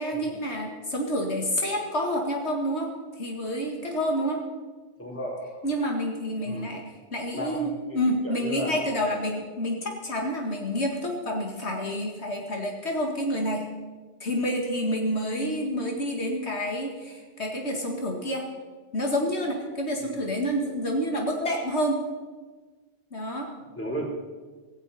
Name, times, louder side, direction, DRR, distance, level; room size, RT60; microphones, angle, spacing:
voice 1, 0.0-2.9 3.2-4.4 5.6-13.7 14.2-18.5 18.9-22.0 23.1-23.5, equal, 75° left, 1 dB, 2.2 m, -28 dB
voice 2, 5.0-5.6 6.4-6.8 7.4-8.8 20.0-20.3 23.7-24.0, equal, 10° left, -2 dB, 4.1 m, -35 dB
16.5 x 16.5 x 4.2 m, 1.3 s
omnidirectional pair, 1.2 m